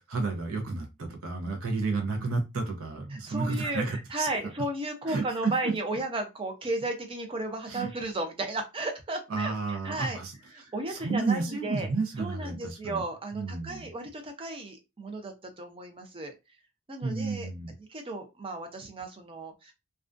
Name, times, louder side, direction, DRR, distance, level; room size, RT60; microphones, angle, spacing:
voice 1, 0.0-4.3 5.1-5.7 7.7-7.9 9.3-10.3 10.6-13.0 13.3-13.9 17.0-17.7, right 3 dB, 70° right, 0.6 m, -31 dB
voice 2, 3.1-10.2 10.5-11.9 12.2-16.3 16.9-17.5 17.8-19.7, right 2 dB, 25° right, 0.5 m, -34 dB
2.4 x 2.2 x 2.4 m
head